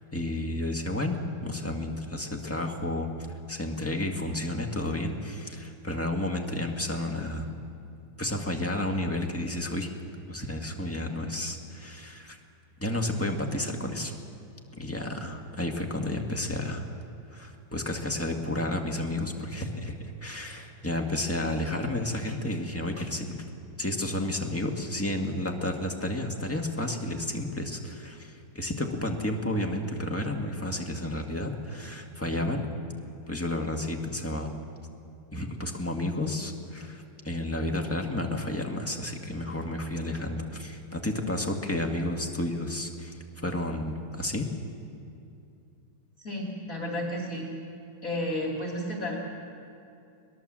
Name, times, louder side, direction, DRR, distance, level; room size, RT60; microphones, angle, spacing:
voice 1, 0.1-3.1 3.5-7.5 8.2-10.0 10.3-12.4 12.8-14.1 14.8-16.9 17.3-23.4 23.8-32.6 33.3-34.6 35.3-43.1 43.4-44.5, left 1 dB, 10° left, 2 dB, 1.5 m, -31 dB
voice 2, 46.2-47.5 48.0-49.1, left 1 dB, 40° left, -2 dB, 2.8 m, -32 dB
22.0 x 19.5 x 7.6 m, 2.6 s
omnidirectional pair, 2.2 m